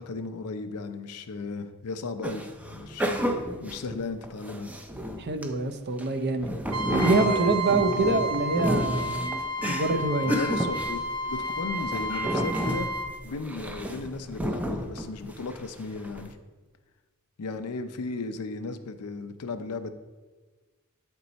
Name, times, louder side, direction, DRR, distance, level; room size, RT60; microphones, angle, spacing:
voice 1, 0.0-4.7 7.9-8.2 10.2-12.9 13.2-16.4 17.4-19.9, left 3 dB, 80° left, 10 dB, 0.5 m, -35 dB
sound 1, 2.2-5.5 6.0-15.6 16.0-16.2, equal, 5° right, 0.4 m, -31 dB
voice 2, 5.2-6.5 6.9-10.3, right 3 dB, 50° right, 7 dB, 0.6 m, -26 dB
Trumpet, 6.7-13.1, right 1 dB, 80° right, 1.0 m, -31 dB
8.7 x 4.5 x 4.0 m, 1.3 s
head